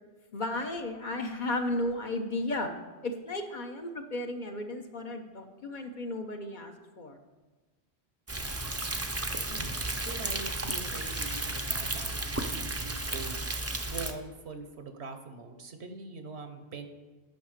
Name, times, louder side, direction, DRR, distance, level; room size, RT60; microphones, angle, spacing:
voice 1, 0.3-2.7 3.0-7.2, left 2 dB, 50° left, 4 dB, 1.0 m, -34 dB
Thunder, 8.3-14.1, right 2 dB, 20° right, 0.5 m, -33 dB
voice 2, 10.0-13.4 13.8-16.9, right 4 dB, 85° right, 7 dB, 1.3 m, -43 dB
9.4 x 5.8 x 6.6 m, 1.2 s
omnidirectional pair, 1.1 m